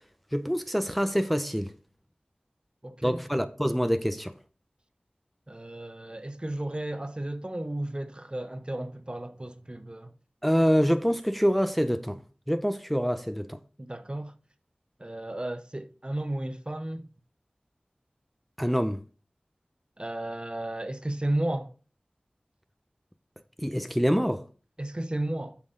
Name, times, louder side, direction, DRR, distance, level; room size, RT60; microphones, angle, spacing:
voice 1, 0.3-1.7 3.0-4.3 10.4-12.2 12.5-13.6 18.6-19.0 23.6-24.4, equal, ahead, 0.6 m, -25 dB
voice 2, 2.8-3.2 5.5-10.1 13.8-14.3 15.0-17.1 20.0-21.7 24.8-25.6, right 1 dB, 30° right, 0.7 m, -33 dB
9.9 x 6.0 x 3.8 m
wide cardioid pair, 45°, 3 cm